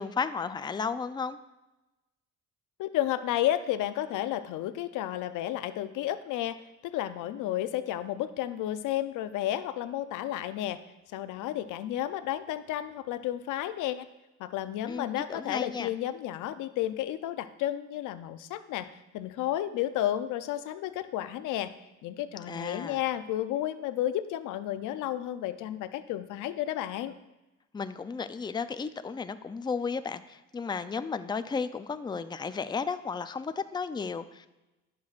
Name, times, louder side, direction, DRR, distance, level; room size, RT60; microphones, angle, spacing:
voice 1, 0.0-1.4 14.9-15.9 22.5-23.0 27.7-34.5, left 5 dB, 15° left, 11 dB, 0.4 m, -34 dB
voice 2, 2.8-10.8 11.1-14.1 14.4-18.9 19.1-21.7 22.0-27.1, left 12 dB, 90° left, 13 dB, 0.5 m, -32 dB
14.5 x 6.1 x 2.4 m, 1.0 s
cardioid pair, 90°, 30 cm